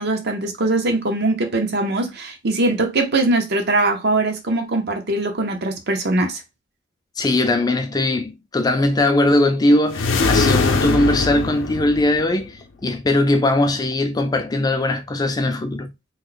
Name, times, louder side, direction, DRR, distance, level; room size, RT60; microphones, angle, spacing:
voice 1, 0.0-6.4, right 2 dB, 55° right, 0.7 m, -21 dB
voice 2, 7.2-12.6 12.8-15.9, left 1 dB, 20° left, 0.4 m, -20 dB
sound 1, 9.9-12.5, left 4 dB, 70° left, 0.6 m, -21 dB
3.0 x 2.1 x 3.8 m
head